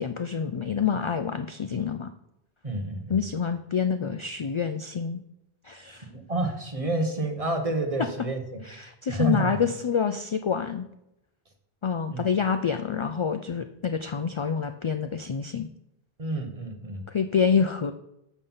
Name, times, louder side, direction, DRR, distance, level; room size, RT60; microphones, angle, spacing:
voice 1, 0.0-2.1 3.1-5.2 5.6-6.1 8.6-10.9 11.8-15.7 17.1-17.9, left 6 dB, 55° left, 9 dB, 0.3 m, -27 dB
voice 2, 2.6-3.2 5.8-8.6 9.1-9.5 12.1-12.2 16.2-17.0, right 2 dB, 35° right, 4 dB, 1.2 m, -29 dB
7.3 x 6.6 x 5.5 m, 0.84 s
omnidirectional pair, 1.0 m